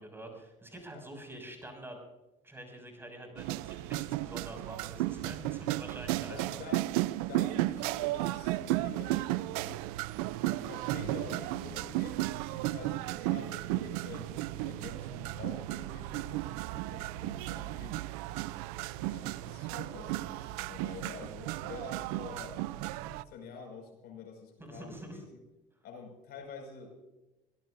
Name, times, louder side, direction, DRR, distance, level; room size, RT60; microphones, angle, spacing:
voice 1, 0.0-2.0 2.4-6.8 24.6-25.2, right 1 dB, 10° right, 3 dB, 6.4 m, -46 dB
sound 1, 3.4-23.2, right 17 dB, 85° right, 0.5 m, -34 dB
voice 2, 6.3-9.9 10.5-18.0 18.9-22.7 23.1-25.4 25.8-27.0, left 4 dB, 65° left, 3 dB, 5.6 m, -47 dB
25.0 x 17.0 x 2.6 m, 1.0 s
supercardioid pair, 80°, 18 cm